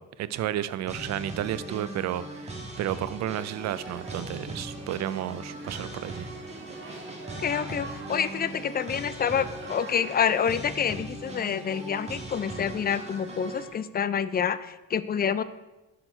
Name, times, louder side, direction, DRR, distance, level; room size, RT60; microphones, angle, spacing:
voice 1, 0.0-6.3, right 12 dB, 65° right, 16 dB, 0.4 m, -32 dB
sound 1, 0.9-13.7, right 1 dB, 20° right, 1.5 m, -40 dB
sound 2, 3.5-10.8, right 3 dB, 40° right, 1.5 m, -46 dB
voice 2, 7.4-15.4, left 7 dB, 30° left, 14 dB, 0.4 m, -27 dB
6.5 x 5.9 x 4.4 m, 1.1 s
cardioid pair, 90°, 30 cm